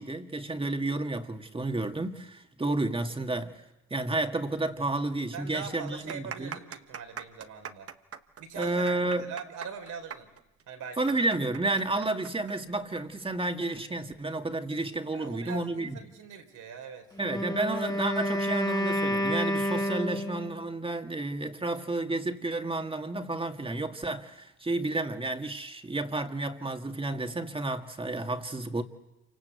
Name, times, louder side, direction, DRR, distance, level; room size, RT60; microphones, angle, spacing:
voice 1, 0.0-3.6 3.9-6.6 8.6-9.3 11.0-15.9 17.2-28.8, right 2 dB, 20° right, 2.0 m, -31 dB
sound 1, 4.7-4.8 5.0-5.1 5.8-13.0 13.3-13.4 14.2-14.4, right 8 dB, 50° right, 1.3 m, -42 dB
voice 2, 5.3-7.9 8.4-8.9 9.2-10.3 10.7-11.2 15.1-17.2, right 6 dB, 75° right, 4.0 m, -42 dB
Wind instrument woodwind instrument, 17.2-20.7, equal, 15° left, 2.1 m, -29 dB
27.5 x 25.5 x 8.2 m
cardioid pair, 90°, 30 cm